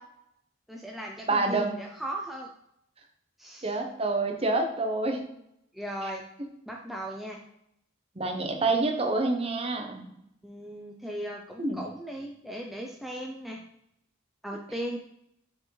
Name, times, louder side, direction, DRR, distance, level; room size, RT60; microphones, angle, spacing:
voice 1, 0.7-2.5 3.4-3.8 5.7-6.2 6.7-7.4 10.4-13.6 14.4-15.0, right 1 dB, ahead, -1 dB, 0.5 m, -37 dB
voice 2, 1.3-1.8 3.6-5.2 8.2-10.1 11.6-11.8, right 2 dB, 30° right, 4 dB, 0.8 m, -27 dB
6.9 x 4.5 x 3.2 m, 0.76 s
head